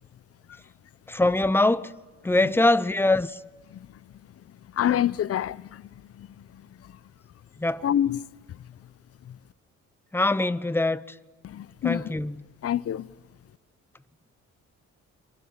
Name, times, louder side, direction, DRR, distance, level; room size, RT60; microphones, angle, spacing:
voice 1, 1.1-1.9 2.2-3.3 7.6-7.8 10.1-11.0 11.8-12.3, left 2 dB, 5° left, 0.9 m, -23 dB
voice 2, 4.7-6.3 6.5-6.9 7.8-8.2 9.3-9.4 11.4-12.1 12.6-13.1, left 10 dB, 50° left, 0.8 m, -28 dB
27.0 x 23.5 x 8.7 m
cardioid pair, 90°, 30 cm